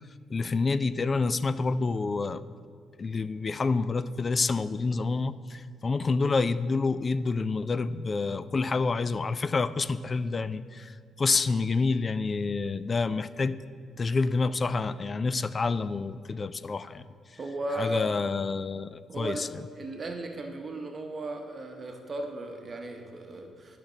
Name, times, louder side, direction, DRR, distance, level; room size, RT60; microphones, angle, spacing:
voice 1, 0.3-2.4 3.0-13.6 14.0-17.1 17.8-19.5, left 4 dB, 35° left, 15 dB, 0.3 m, -28 dB
voice 2, 17.4-18.2 19.1-19.5 19.7-23.8, right 1 dB, 40° right, 4 dB, 0.9 m, -35 dB
11.5 x 5.9 x 3.9 m, 2.1 s
cardioid pair, 90°, 0 cm